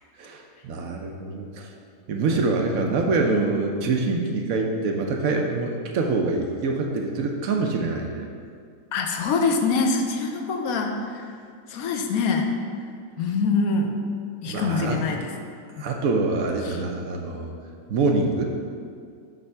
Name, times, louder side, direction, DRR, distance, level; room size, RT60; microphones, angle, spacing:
voice 1, 0.2-1.7 2.1-8.3 14.4-15.0 15.8-17.5 17.9-18.4, right 3 dB, 75° right, 2 dB, 1.0 m, -25 dB
voice 2, 8.9-11.3 11.7-12.5 13.2-13.9 14.4-15.3 15.8-15.9 16.6-16.8, left 4 dB, 75° left, 3 dB, 1.1 m, -24 dB
7.6 x 3.4 x 5.5 m, 2.2 s
omnidirectional pair, 1.5 m